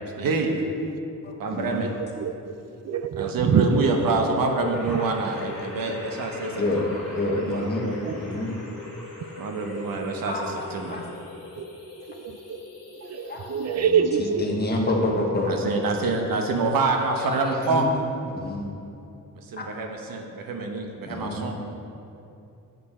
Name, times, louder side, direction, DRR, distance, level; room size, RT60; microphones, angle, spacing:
voice 1, 0.2-0.6 1.4-1.9 3.2-6.9 7.3-8.2 9.4-11.0 15.5-17.9 19.5-21.5, right 3 dB, 85° right, 3 dB, 1.1 m, -26 dB
voice 2, 1.2-1.8 6.6-6.8 7.1-7.8 8.2-8.5 10.3-11.1 13.3-13.4 13.8-13.9 14.2-15.5 17.2-17.4 17.7-17.8 18.3-18.6 19.6-19.7 21.0-21.4, left 2 dB, 30° left, -1 dB, 1.3 m, -28 dB
voice 3, 2.0-4.0 8.0-8.2 9.7-9.9 11.6-11.7 12.1-12.6 13.0-14.8, right 6 dB, 50° right, 10 dB, 0.4 m, -26 dB
sound 1, 3.9-13.9, left 3 dB, 45° left, 2.0 m, -42 dB
sound 2, 4.7-11.0, equal, ahead, 2.5 m, -44 dB
9.8 x 8.1 x 4.3 m, 2.8 s
wide cardioid pair, 175°, 34 cm